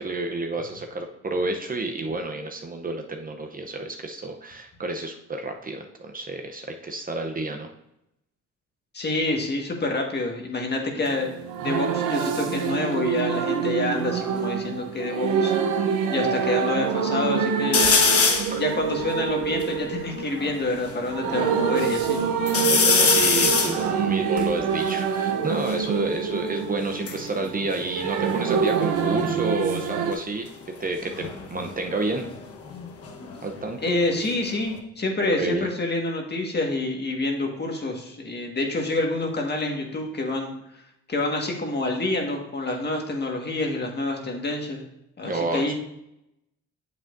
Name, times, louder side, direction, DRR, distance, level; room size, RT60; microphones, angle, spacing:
voice 1, 0.0-7.7 18.5-18.6 22.5-30.5 30.8-32.3 33.4-33.8 35.4-35.7 45.2-45.7, right 2 dB, 30° right, 4 dB, 0.7 m, -30 dB
voice 2, 8.9-11.3 11.6-15.5 16.1-17.8 18.6-22.2 33.8-40.5 41.1-44.8 45.2-45.7, left 2 dB, 35° left, 1 dB, 1.6 m, -27 dB
sound 1, 11.0-30.1, right 7 dB, 80° right, 0.8 m, -26 dB
sound 2, 17.7-18.6 19.1-19.2 19.4-21.0 21.5-22.1 22.5-25.8 26.8-28.7 29.0-29.4 31.0-33.6 34.0-34.8, left 5 dB, 50° left, 1.2 m, -25 dB
8.4 x 7.2 x 2.6 m, 0.84 s
cardioid pair, 90°, 30 cm